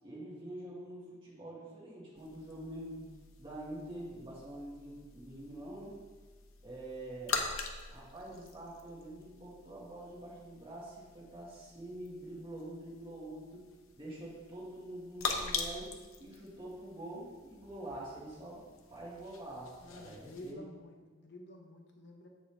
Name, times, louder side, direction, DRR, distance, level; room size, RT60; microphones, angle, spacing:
voice 1, 0.0-3.0 3.4-6.0 6.6-7.4 7.9-13.7 13.9-20.6, right 1 dB, 25° right, -7 dB, 1.8 m, -46 dB
sound 1, 2.2-20.5, left 4 dB, 85° left, 0.8 m, -44 dB
voice 2, 19.8-22.3, left 1 dB, 55° left, 2 dB, 0.9 m, -50 dB
8.0 x 6.5 x 3.4 m, 1.4 s
head